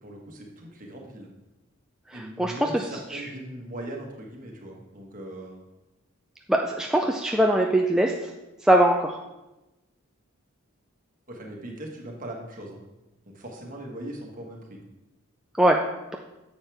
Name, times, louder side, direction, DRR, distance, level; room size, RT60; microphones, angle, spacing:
voice 1, 0.0-1.3 2.1-5.6 11.3-12.8 13.3-14.8, right 1 dB, 40° right, 0 dB, 1.5 m, -39 dB
voice 2, 2.1-2.8 3.1-3.2 6.5-8.1 8.6-9.2 15.6-15.8, right 1 dB, 5° right, 0 dB, 0.4 m, -21 dB
9.6 x 7.4 x 3.4 m, 1.0 s
head